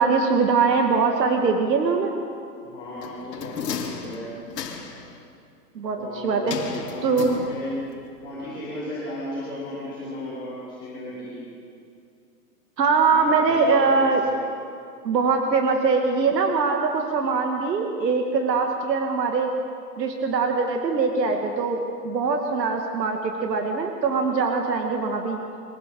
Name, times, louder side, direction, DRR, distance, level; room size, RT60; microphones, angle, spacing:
voice 1, 0.0-2.1 5.8-7.4 12.8-14.2 15.0-19.5 20.0-25.4, right 4 dB, 85° right, 3 dB, 2.1 m, -22 dB
voice 2, 2.6-4.3 5.9-7.7 8.2-11.4 13.1-14.3, left 1 dB, 10° left, -11 dB, 4.8 m, -35 dB
sound 1, 3.0-5.1 6.5-7.9 8.2-8.3, left 6 dB, 80° left, 2.8 m, -34 dB
23.5 x 16.0 x 6.9 m, 2.4 s
hypercardioid pair, 170°, 49 cm